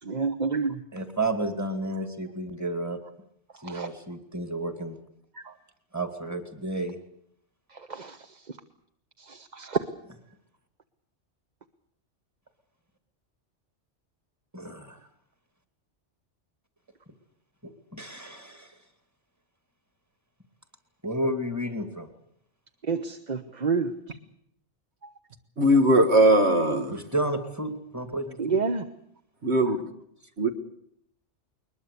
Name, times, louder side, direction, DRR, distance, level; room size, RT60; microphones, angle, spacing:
voice 1, 0.0-0.8 3.6-3.9 5.4-5.5 7.7-8.6 9.2-9.9 22.8-23.9 25.0-25.1 28.4-28.8, right 5 dB, 40° right, 1.1 m, -29 dB
voice 2, 0.9-3.0 3.6-5.0 5.9-7.0 14.5-15.0 17.6-18.8 21.0-22.1 26.9-28.6, right 1 dB, 15° right, 2.3 m, -31 dB
voice 3, 25.6-27.0 29.4-29.8 30.4-30.5, right 1 dB, 65° right, 1.9 m, -20 dB
21.5 x 21.0 x 8.4 m
omnidirectional pair, 1.2 m